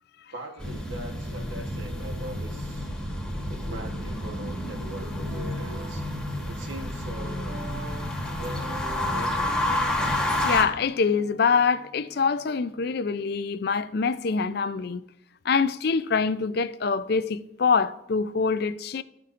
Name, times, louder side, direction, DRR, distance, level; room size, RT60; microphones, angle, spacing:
voice 1, 0.3-2.9 3.5-6.0 6.4-7.6 8.4-9.6, right 1 dB, 70° right, 1.2 m, -41 dB
sound 1, 0.6-10.6, left 1 dB, 5° left, 1.2 m, -30 dB
Guitar, 5.0-13.2, right 1 dB, 90° right, 2.4 m, -43 dB
voice 2, 10.4-15.0 15.4-19.0, left 5 dB, 50° left, 0.4 m, -25 dB
15.0 x 5.8 x 2.5 m
head